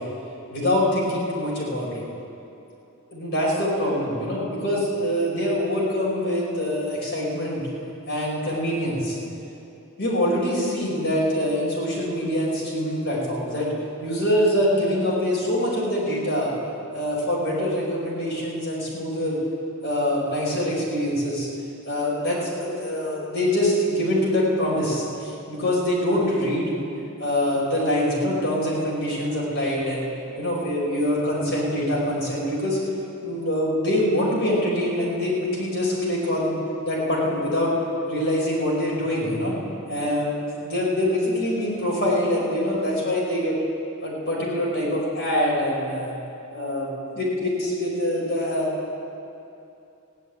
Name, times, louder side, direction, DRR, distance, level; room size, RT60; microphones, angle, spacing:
voice 1, 0.5-2.0 3.1-7.6 8.1-9.2 10.0-13.7 14.0-16.5 16.9-19.4 19.8-21.5 21.8-26.8 27.2-30.1 30.4-32.8 33.2-36.5 36.8-37.7 38.1-39.6 39.9-40.3 40.6-43.6 44.0-46.1 46.5-48.7, left 1 dB, 50° left, -5 dB, 5.0 m, -24 dB
15.5 x 9.8 x 9.4 m, 2.8 s
head